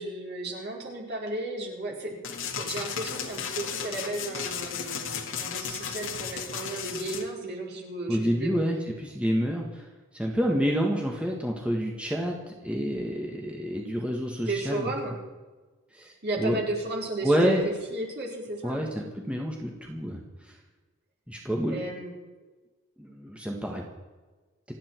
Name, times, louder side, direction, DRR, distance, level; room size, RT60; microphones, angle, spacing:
voice 1, 0.0-2.2 2.6-8.6 14.5-15.2 16.2-18.8 21.7-22.1, right 2 dB, 55° right, -1 dB, 4.5 m, -34 dB
sound 1, 2.2-7.2, left 7 dB, 65° left, 2.0 m, -34 dB
voice 2, 8.1-9.8 10.1-12.4 12.6-14.9 15.9-16.1 16.4-16.6 17.2-17.6 18.6-20.2 21.3-21.8 23.0-23.8, equal, 5° right, 0 dB, 1.8 m, -28 dB
28.0 x 9.3 x 4.6 m, 1.3 s
head